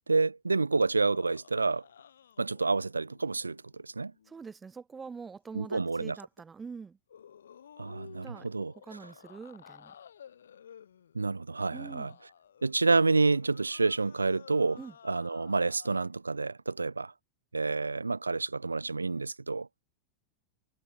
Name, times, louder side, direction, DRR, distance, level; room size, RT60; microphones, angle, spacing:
voice 1, 0.1-1.8 2.4-3.6 3.8-4.1 5.5-6.2 7.8-8.7 11.1-12.1 12.6-14.8 15.0-17.1 17.5-19.8, right 3 dB, 80° right, 0.3 m, -28 dB
sound 1, 1.0-4.4 5.6-6.0 7.1-16.1, left 8 dB, 65° left, 3.4 m, -54 dB
voice 2, 4.3-7.0 8.2-8.5 8.8-9.9 11.7-12.2 14.8-14.9, right 5 dB, 15° right, 0.9 m, -44 dB
figure-of-eight pair, 90°, 0 cm